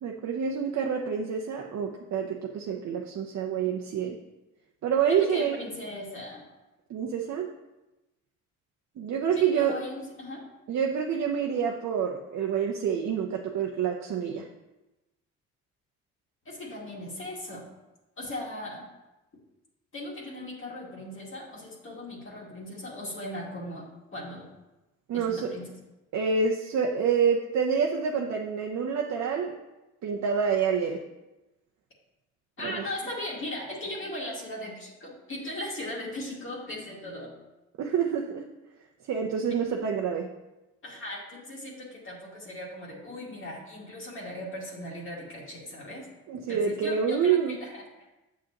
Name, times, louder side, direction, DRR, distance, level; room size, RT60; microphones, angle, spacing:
voice 1, 0.0-4.2 4.8-5.6 6.9-7.5 9.0-9.8 10.7-14.4 25.1-25.5 26.1-29.5 30.0-31.0 32.6-32.8 37.8-38.5 39.1-40.3 46.3-47.6, right 7 dB, 65° right, 0 dB, 0.8 m, -27 dB
voice 2, 5.1-6.4 9.3-10.4 16.5-17.7 18.2-18.8 19.9-24.5 25.1-25.7 32.6-37.3 39.7-39.8 40.8-46.1 46.5-47.8, left 1 dB, 45° left, -3 dB, 2.1 m, -38 dB
7.6 x 7.0 x 2.9 m, 1.0 s
cardioid pair, 90°, 30 cm